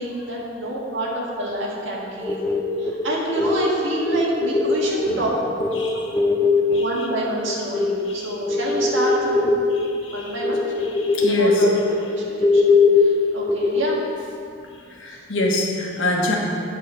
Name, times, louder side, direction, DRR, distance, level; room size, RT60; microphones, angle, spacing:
voice 1, 0.0-2.4 2.8-5.3 6.2-6.4 6.8-9.5 10.1-10.6 11.3-14.0 15.1-15.2, right 1 dB, 80° right, -5 dB, 1.8 m, -27 dB
sound 1, 2.2-8.0 8.3-14.2, left 3 dB, 15° left, 0.4 m, -21 dB
voice 2, 10.9-11.7 15.0-16.4, left 1 dB, 85° left, -2 dB, 1.3 m, -24 dB
9.0 x 4.2 x 6.3 m, 2.4 s
head